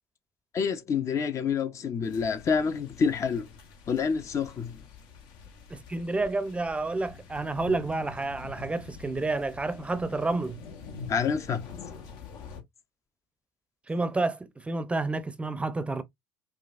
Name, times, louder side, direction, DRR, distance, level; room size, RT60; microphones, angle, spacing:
voice 1, 0.5-3.5 3.9-4.8 11.1-11.7, left 6 dB, 40° left, 0.6 m, -28 dB
sound 1, 2.0-12.6, left 5 dB, 65° left, 1.0 m, -46 dB
voice 2, 5.7-10.6 13.9-16.0, right 3 dB, 15° right, 0.6 m, -30 dB
5.0 x 2.3 x 2.5 m
supercardioid pair, 85°, 8 cm